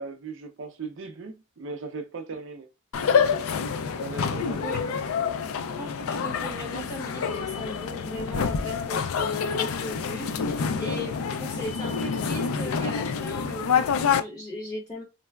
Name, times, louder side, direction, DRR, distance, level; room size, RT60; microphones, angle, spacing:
voice 1, 0.0-2.7 4.0-5.4, right 4 dB, 55° right, 0.5 m, -38 dB
sound 1, 2.9-14.2, left 6 dB, 70° left, 0.3 m, -27 dB
voice 2, 5.8-15.0, equal, 15° left, 1.1 m, -37 dB
3.9 x 2.1 x 2.2 m
head